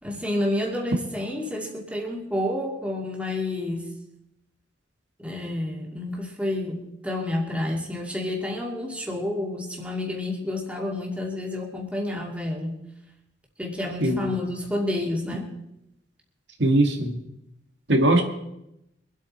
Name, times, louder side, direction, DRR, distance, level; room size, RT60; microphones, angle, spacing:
voice 1, 0.0-4.0 5.2-12.9 13.6-15.5, left 1 dB, 5° right, -1 dB, 2.4 m, -29 dB
voice 2, 16.6-17.2 17.9-18.2, right 1 dB, 75° right, 3 dB, 2.0 m, -20 dB
24.5 x 8.4 x 4.4 m, 0.83 s
head